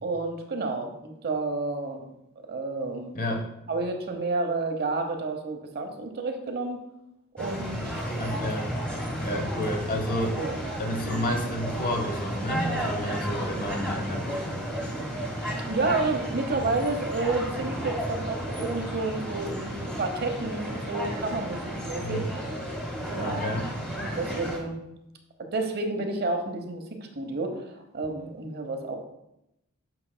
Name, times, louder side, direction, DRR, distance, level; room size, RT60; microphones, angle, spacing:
voice 1, 0.0-2.1 2.5-3.1 3.7-6.8 7.3-8.0 9.3-9.6 10.3-10.6 15.7-22.3 23.1-23.4 24.0-24.8 25.4-27.6 27.9-29.0, right 3 dB, 50° right, 5 dB, 0.9 m, -30 dB
voice 2, 3.1-3.5 8.1-8.7 9.2-10.4 10.8-14.6 22.0-22.2 23.2-23.7, left 1 dB, 45° left, 4 dB, 1.0 m, -30 dB
sound 1, 7.4-24.6, equal, 5° left, 1.6 m, -33 dB
8.8 x 6.1 x 2.2 m, 0.85 s
head